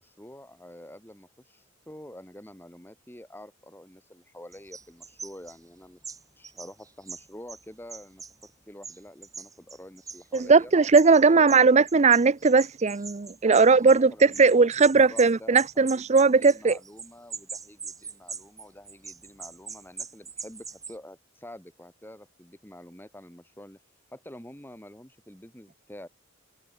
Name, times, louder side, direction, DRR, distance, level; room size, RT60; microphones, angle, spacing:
voice 1, 0.0-6.0 6.4-10.7 11.2-11.7 13.4-23.8 24.1-26.1, left 1 dB, 10° left, 4.7 m, -47 dB
sound 1, 4.5-5.6 6.0-7.6 7.9-8.5 8.8-10.5 10.8-21.0, right 5 dB, 20° right, 2.9 m, -41 dB
voice 2, 10.3-16.8, right 4 dB, 35° right, 0.5 m, -19 dB
head